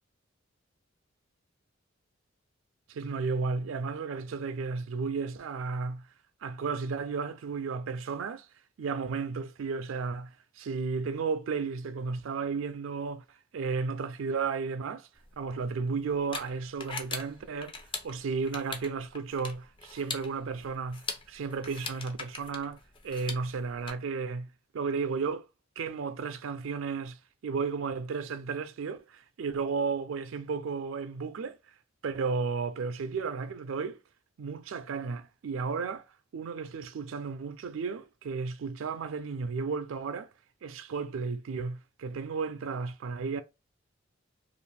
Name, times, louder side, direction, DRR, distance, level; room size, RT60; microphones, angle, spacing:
voice 1, 2.9-6.1 6.4-8.5 8.8-15.1 15.4-17.8 18.0-22.8 23.0-25.5 25.8-31.8 32.0-34.0 34.4-36.1 36.3-40.3 40.6-43.4, right 5 dB, 75° right, 0.4 m, -33 dB
tafelvoetbal cijfers, 15.2-23.9, left 4 dB, 25° left, 0.4 m, -42 dB
2.5 x 2.5 x 3.2 m
head